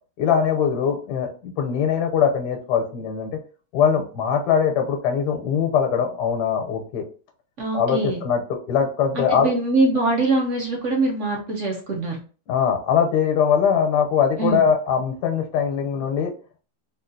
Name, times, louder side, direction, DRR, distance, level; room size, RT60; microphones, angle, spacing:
voice 1, 0.2-3.3 3.7-7.0 7.7-9.5 12.5-16.3, left 7 dB, 80° left, 4 dB, 1.3 m, -21 dB
voice 2, 7.6-8.2 9.1-12.2 14.4-14.6, right 2 dB, 60° right, 0 dB, 0.9 m, -23 dB
3.8 x 2.4 x 2.6 m, 0.38 s
omnidirectional pair, 1.8 m